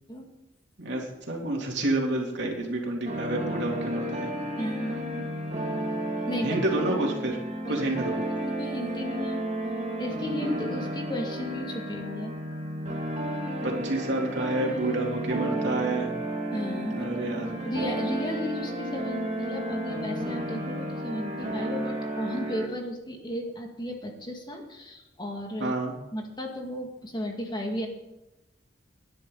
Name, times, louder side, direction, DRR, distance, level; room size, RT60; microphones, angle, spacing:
voice 1, 0.8-4.3 6.4-7.4 7.7-8.2 13.6-16.1 16.9-17.5 25.6-25.9, right 2 dB, 65° right, 0 dB, 3.1 m, -29 dB
sound 1, 3.1-22.7, right 1 dB, 35° right, 2.2 m, -32 dB
voice 2, 4.6-5.3 6.3-6.6 7.6-7.8 8.6-9.4 10.0-12.3 16.5-17.1 17.6-25.7 26.1-27.9, equal, 25° left, 2 dB, 2.2 m, -34 dB
19.0 x 11.0 x 4.0 m, 0.96 s
head